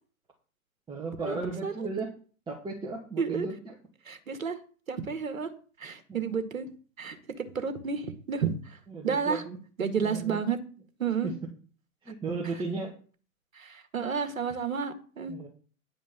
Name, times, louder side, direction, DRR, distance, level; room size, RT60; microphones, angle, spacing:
voice 1, 0.9-2.1 2.5-3.8 6.1-6.4 8.9-9.6 10.0-10.4 11.2-11.3 12.0-12.9 15.3-15.5, right 3 dB, 10° right, -3 dB, 2.1 m, -35 dB
voice 2, 4.1-4.6 4.9-5.5 5.8-6.7 7.0-8.5 9.0-9.4 9.8-10.6 11.0-11.3 13.6-15.3, right 6 dB, 70° right, 8 dB, 1.9 m, -31 dB
10.0 x 5.1 x 7.6 m, 0.40 s
figure-of-eight pair, 110°, 42 cm